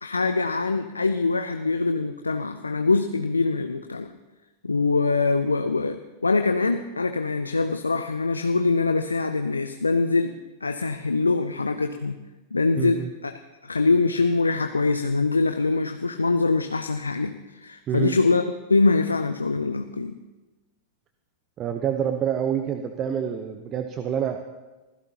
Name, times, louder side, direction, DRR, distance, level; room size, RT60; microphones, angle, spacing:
voice 1, 0.0-4.1 4.6-10.4 10.6-12.2 12.5-13.3 13.6-20.2, left 3 dB, 80° left, 8 dB, 0.6 m, -23 dB
voice 2, 12.8-13.1 17.9-18.2 21.6-24.5, right 8 dB, 30° right, 7 dB, 0.9 m, -27 dB
25.5 x 15.5 x 2.9 m, 1.1 s
figure-of-eight pair, 90°, 0 cm